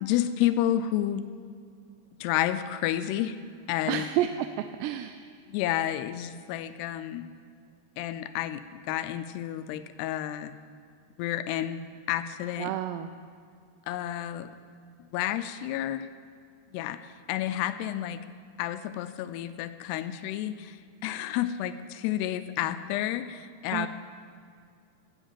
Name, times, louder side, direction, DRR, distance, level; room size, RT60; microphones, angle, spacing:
voice 1, 0.0-1.2 2.2-3.4 3.7-4.1 5.5-7.3 8.0-10.5 11.2-11.8 12.1-12.7 13.9-14.5 15.1-16.1 16.7-17.0 17.3-18.2 18.6-23.9, left 12 dB, 85° left, 11 dB, 2.6 m, -30 dB
voice 2, 3.9-4.5 4.8-5.2 12.6-13.1 23.7-23.9, right 12 dB, 90° right, 9 dB, 2.7 m, -29 dB
17.0 x 8.2 x 7.2 m, 2.2 s
omnidirectional pair, 4.8 m